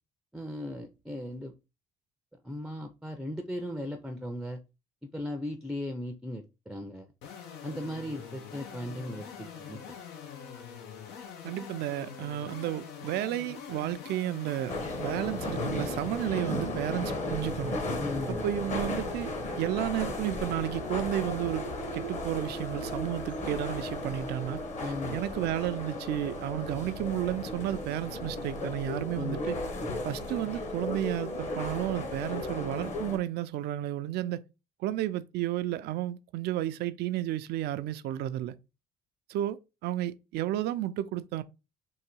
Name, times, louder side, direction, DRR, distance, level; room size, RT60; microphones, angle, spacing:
voice 1, 0.3-1.5 2.4-4.6 5.1-7.1 7.6-9.8 18.0-18.5 24.8-25.2 29.2-29.4 29.8-29.9, left 1 dB, 5° right, 0.5 m, -37 dB
sound 1, 7.2-16.3, left 7 dB, 90° left, 1.0 m, -44 dB
voice 2, 11.4-14.7 15.0-17.7 18.3-21.7 21.9-24.6 25.1-29.6 30.0-34.4 34.8-38.6 39.3-41.4, right 13 dB, 75° right, 0.4 m, -32 dB
sound 2, 14.7-33.2, left 2 dB, 45° left, 1.2 m, -35 dB
3.9 x 2.7 x 4.5 m
cardioid pair, 110°, 17 cm